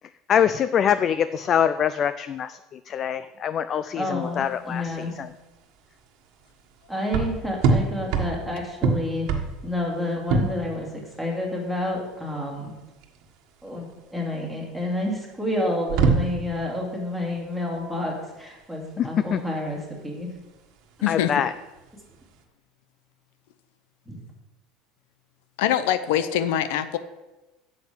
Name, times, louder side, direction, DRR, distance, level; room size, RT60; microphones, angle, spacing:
voice 1, 0.3-2.6 2.9-5.3 19.0-19.4 21.1-21.5, left 8 dB, 30° left, 13 dB, 0.3 m, -24 dB
voice 2, 4.0-5.1 6.9-9.3 9.6-12.7 13.6-20.3 21.0-21.1 24.1-24.2, left 1 dB, ahead, -1 dB, 2.3 m, -29 dB
sound 1, 4.2-22.4, right 4 dB, 50° right, 1.5 m, -28 dB
voice 3, 21.0-21.3 25.6-27.0, left 11 dB, 80° left, 12 dB, 0.7 m, -23 dB
9.0 x 7.4 x 8.2 m, 1.1 s
cardioid pair, 170°, 0 cm